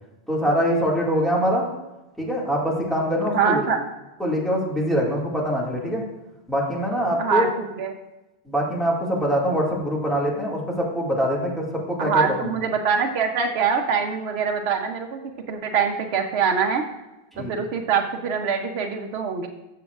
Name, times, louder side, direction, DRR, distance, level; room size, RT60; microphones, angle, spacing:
voice 1, 0.3-1.7 2.2-3.6 4.2-6.0 6.5-7.4 8.5-12.5 17.3-17.5, equal, ahead, -4 dB, 1.9 m, -24 dB
voice 2, 3.3-3.8 7.2-7.9 12.0-15.2 15.5-16.8 17.4-19.5, right 6 dB, 85° right, 4 dB, 1.0 m, -24 dB
12.5 x 6.8 x 2.4 m, 1.0 s
omnidirectional pair, 1.0 m